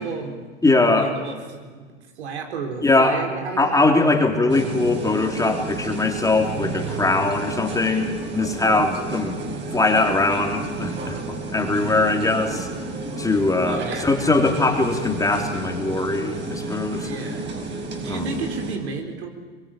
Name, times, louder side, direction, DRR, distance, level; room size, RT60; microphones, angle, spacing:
voice 1, 0.0-0.5 1.0-3.9 13.6-14.1 17.0-17.5 17.9-19.3, right 5 dB, 75° right, 3 dB, 4.3 m, -32 dB
voice 2, 0.6-1.1 2.8-3.2 3.6-9.4 9.7-12.7 13.2-17.1 18.0-18.3, left 3 dB, 10° left, 2 dB, 3.3 m, -21 dB
sound 1, 4.5-18.8, right 3 dB, 35° right, 5.4 m, -31 dB
23.5 x 22.5 x 9.0 m, 1.5 s
hypercardioid pair, 95°, 33 cm